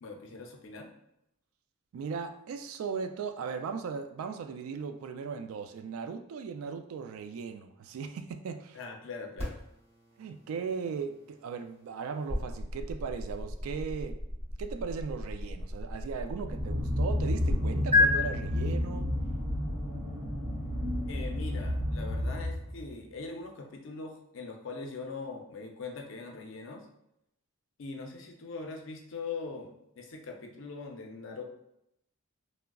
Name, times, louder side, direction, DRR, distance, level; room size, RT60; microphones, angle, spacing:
voice 1, 0.0-0.9 8.7-9.6 21.1-26.9 27.8-31.4, left 4 dB, 65° left, 3 dB, 0.5 m, -41 dB
voice 2, 1.9-8.8 10.2-14.2 14.6-19.1, right 5 dB, 85° right, 10 dB, 0.3 m, -37 dB
sound 1, 9.4-17.6 17.9-18.1, left 2 dB, 30° right, 0.9 m, -33 dB
sound 2, 16.4-22.9, left 1 dB, 70° right, 0.9 m, -31 dB
3.5 x 2.0 x 2.2 m, 0.81 s
head